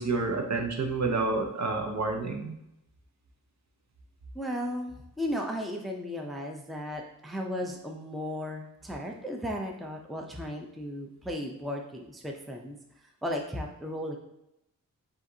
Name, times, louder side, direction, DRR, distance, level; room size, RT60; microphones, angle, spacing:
voice 1, 0.0-2.6, right 3 dB, 55° right, 3 dB, 0.8 m, -29 dB
voice 2, 4.3-12.8 13.2-14.2, equal, ahead, 1 dB, 0.5 m, -35 dB
7.5 x 2.5 x 2.7 m, 0.84 s
wide cardioid pair, 100°, 33 cm